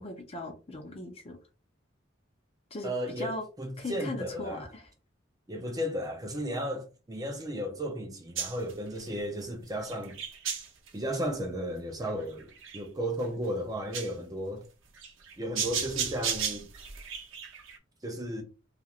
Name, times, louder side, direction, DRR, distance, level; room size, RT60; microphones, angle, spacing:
voice 1, 0.0-1.4 2.7-3.4 3.8-4.9, left 2 dB, 30° left, 0.5 m, -38 dB
voice 2, 2.8-4.6 5.5-10.2 10.9-12.5 12.7-14.6 15.4-16.7 18.0-18.4, equal, 20° right, 0.5 m, -34 dB
sound 1, 8.4-9.1 9.8-10.9 12.0-12.8 13.2-13.3 13.9-14.1 15.0-17.8, right 7 dB, 85° right, 0.6 m, -34 dB
3.0 x 2.4 x 2.4 m
head